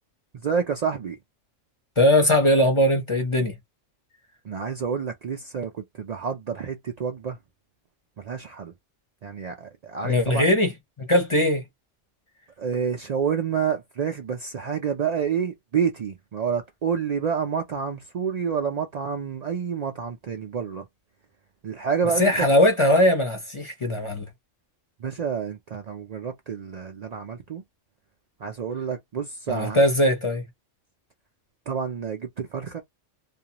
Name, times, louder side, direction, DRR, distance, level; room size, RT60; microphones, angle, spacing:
voice 1, 0.4-1.2 4.5-7.4 8.2-8.7 9.2-10.4 12.6-20.8 21.6-22.5 25.0-27.6 28.4-29.8 31.7-32.8, right 6 dB, 70° right, 0.3 m, -28 dB
voice 2, 2.0-3.5 10.0-11.6 22.2-24.3 29.5-30.4, left 1 dB, 30° left, 0.6 m, -20 dB
2.5 x 2.2 x 2.8 m
omnidirectional pair, 1.3 m